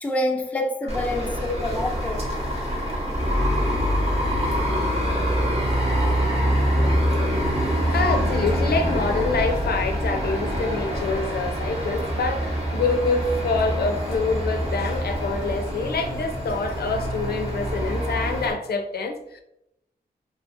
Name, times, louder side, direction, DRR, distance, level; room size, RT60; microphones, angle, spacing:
voice 1, 0.0-2.2, left 1 dB, 10° left, 0.3 m, -27 dB
sound 1, 0.9-18.5, equal, 40° right, 0.9 m, -25 dB
voice 2, 7.9-19.4, left 3 dB, 75° left, 0.4 m, -26 dB
2.8 x 2.7 x 2.4 m
wide cardioid pair, 125°, 16 cm